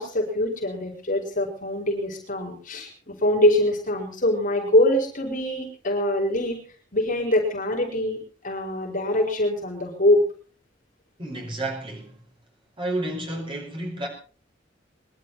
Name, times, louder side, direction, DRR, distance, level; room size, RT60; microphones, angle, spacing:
voice 1, 0.0-6.6 6.9-8.2 8.4-10.3, left 1 dB, 45° left, 5.0 m, -23 dB
voice 2, 11.2-12.2 12.8-14.1, right 1 dB, 30° right, 5.2 m, -31 dB
23.0 x 12.0 x 4.2 m
head